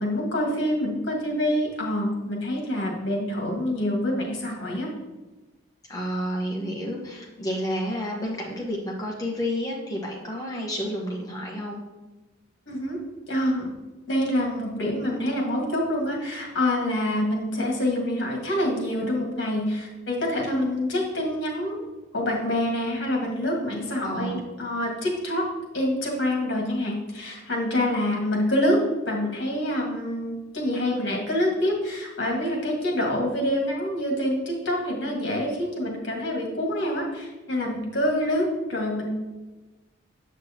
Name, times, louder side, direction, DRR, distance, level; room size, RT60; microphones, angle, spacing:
voice 1, 0.0-4.9 12.7-13.0 13.3-13.7 14.1-21.8 22.1-25.4 25.7-28.8 29.0-39.1, left 1 dB, 65° left, -1 dB, 1.7 m, -26 dB
voice 2, 5.9-11.8 24.0-24.4, equal, 20° left, -2 dB, 1.2 m, -30 dB
7.3 x 6.2 x 2.9 m, 1.2 s
head